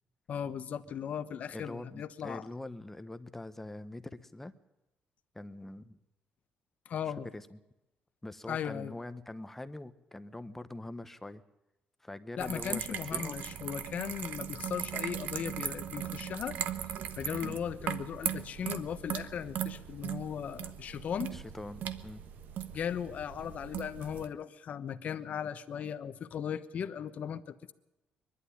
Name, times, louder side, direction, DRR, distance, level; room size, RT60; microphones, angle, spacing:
voice 1, 0.3-2.4 6.9-7.3 8.5-9.0 12.4-16.6 17.1-21.3 22.7-27.7, left 8 dB, 50° left, 10 dB, 1.0 m, -37 dB
voice 2, 1.5-4.5 5.3-6.0 7.3-7.6 8.2-11.4 12.0-13.4 17.4-17.6 21.3-22.2 23.4-23.5, left 2 dB, 10° left, 11 dB, 0.8 m, -44 dB
sound 1, 12.4-24.3, right 9 dB, 65° right, 1.2 m, -39 dB
22.5 x 11.5 x 9.9 m, 0.97 s
cardioid pair, 145°, 3 cm